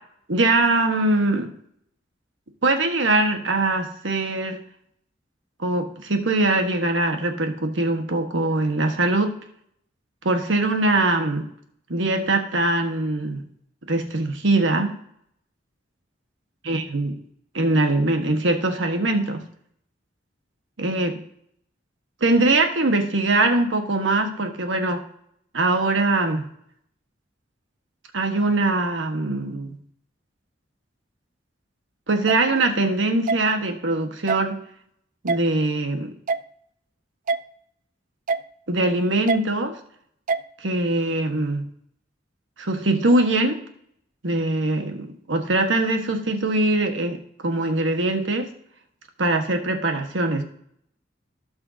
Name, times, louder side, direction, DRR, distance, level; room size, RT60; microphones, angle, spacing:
voice 1, 0.3-1.5 2.6-4.6 5.6-9.4 10.2-11.5 11.9-13.4 13.9-15.0 16.6-17.2 17.5-19.5 20.8-21.1 22.2-25.0 25.5-26.5 28.1-29.8 32.1-34.6 35.2-36.1 38.7-39.7 40.6-41.7 42.6-43.6 44.2-48.5 49.2-50.4, right 2 dB, 75° right, 5 dB, 1.4 m, -22 dB
sound 1, 32.3-32.4 33.3-33.4 34.3-34.4 35.3-35.4 36.3-36.4 37.3-37.4 38.3-38.4 39.3-39.4 40.3-40.4, right 4 dB, 45° right, 0.4 m, -23 dB
16.5 x 5.6 x 2.7 m, 0.68 s
head